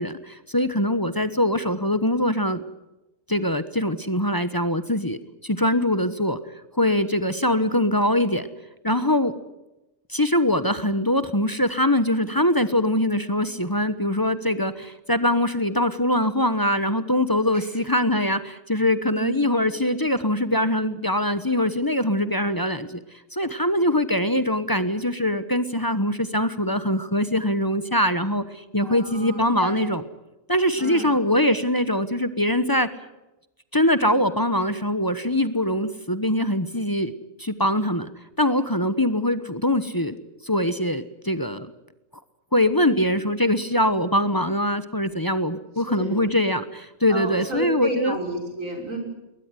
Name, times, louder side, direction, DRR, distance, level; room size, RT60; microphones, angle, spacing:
voice 1, 0.0-2.6 3.3-5.2 5.4-6.4 6.8-8.5 8.8-9.4 10.1-23.0 23.3-30.0 30.5-32.9 33.7-37.1 37.4-38.1 38.4-40.2 40.4-41.7 42.5-48.2, left 1 dB, 20° left, 12 dB, 1.0 m, -23 dB
voice 2, 28.8-29.9 30.8-31.2 45.8-46.3 47.1-49.0, right 1 dB, 80° right, 2 dB, 6.7 m, -31 dB
21.5 x 19.5 x 9.7 m, 0.98 s
omnidirectional pair, 1.4 m